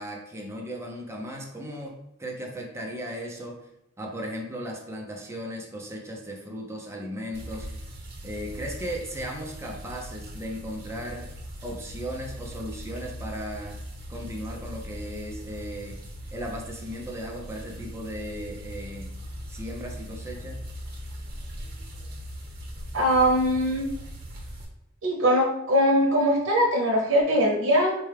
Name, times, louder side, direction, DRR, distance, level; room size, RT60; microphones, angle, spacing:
voice 1, 0.0-3.6 4.0-7.7 8.2-11.3 11.6-13.8 14.1-16.0 16.3-19.1 19.5-20.6, equal, 15° right, 0 dB, 0.5 m, -36 dB
sound 1, 7.3-24.6, equal, 55° right, 0.9 m, -40 dB
voice 2, 22.9-23.9 25.0-27.9, equal, 85° right, -2 dB, 0.7 m, -21 dB
4.4 x 2.2 x 3.3 m, 0.81 s
head